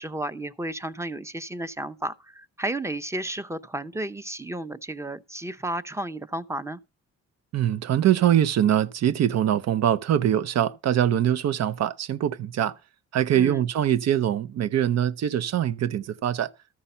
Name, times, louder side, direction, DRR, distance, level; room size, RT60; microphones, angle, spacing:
voice 1, 0.0-6.8 13.3-13.6, right 1 dB, 10° right, 0.7 m, -32 dB
voice 2, 7.5-12.7 13.1-16.5, right 10 dB, 60° right, 0.6 m, -23 dB
13.5 x 5.5 x 5.5 m
cardioid pair, 90°, 30 cm